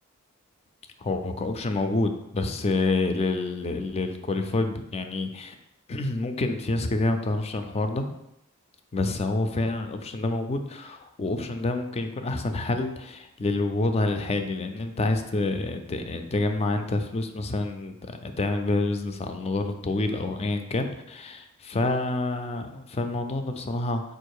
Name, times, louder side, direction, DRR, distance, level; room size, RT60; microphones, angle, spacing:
voice 1, 1.0-5.5 5.9-8.1 8.9-21.4 21.7-24.0, left 2 dB, 30° left, 7 dB, 0.4 m, -28 dB
4.6 x 2.5 x 4.6 m, 0.85 s
head